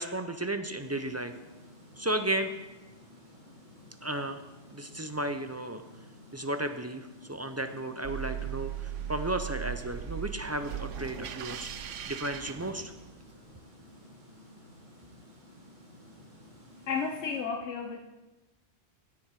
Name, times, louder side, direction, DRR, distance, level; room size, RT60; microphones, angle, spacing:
voice 1, 0.0-1.3 2.0-2.6 4.0-4.4 4.7-5.8 6.3-12.9, right 1 dB, 25° right, 8 dB, 0.3 m, -34 dB
sound 1, 0.8-17.4, left 1 dB, 40° right, 3.0 m, -54 dB
sound 2, 8.0-13.3, right 10 dB, 90° right, 1.0 m, -38 dB
voice 2, 16.9-18.0, left 5 dB, 75° left, 3 dB, 1.1 m, -32 dB
16.5 x 7.0 x 4.8 m, 1.1 s
omnidirectional pair, 1.2 m